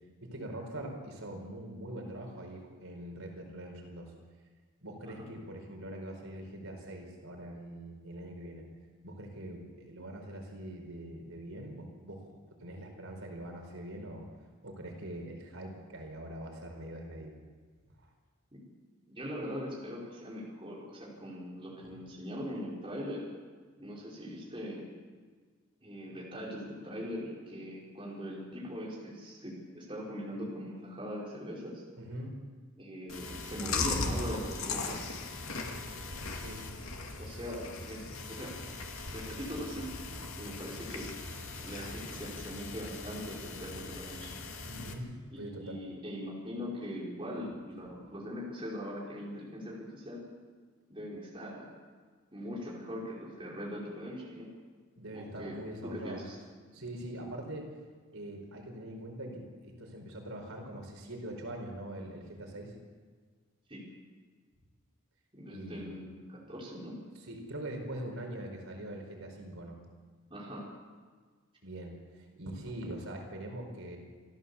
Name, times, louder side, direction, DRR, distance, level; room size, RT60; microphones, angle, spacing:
voice 1, 0.2-4.1 4.8-8.6 9.0-14.3 14.6-17.3 21.8-21.9 32.0-32.3 36.3-36.6 44.7-45.1 45.4-45.8 55.0-56.2 56.7-57.7 58.1-62.7 65.5-66.0 67.1-69.8 71.6-74.0, right 1 dB, 85° right, 2 dB, 4.6 m, -43 dB
voice 2, 19.1-23.3 23.8-24.9 25.8-31.8 32.8-35.0 37.2-38.0 38.3-38.5 39.1-39.9 40.4-41.1 41.6-44.3 45.3-50.2 50.9-51.7 52.3-54.5 55.1-55.6 55.8-56.4 63.7-63.9 65.3-67.0 70.3-70.7, equal, 25° right, -5 dB, 5.3 m, -41 dB
Chewing mastication, 33.1-44.9, left 3 dB, 85° left, 2.5 m, -39 dB
28.5 x 13.5 x 7.2 m, 1.5 s
head